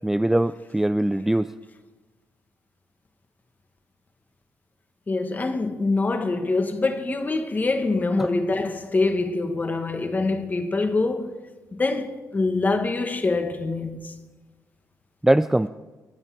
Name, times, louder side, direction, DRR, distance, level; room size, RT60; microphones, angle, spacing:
voice 1, 0.0-1.5 15.2-15.7, right 1 dB, 5° right, 0.3 m, -21 dB
voice 2, 5.1-11.4 11.7-14.2, left 3 dB, 25° left, 1.4 m, -25 dB
22.5 x 9.2 x 4.8 m
cardioid pair, 105°, 7 cm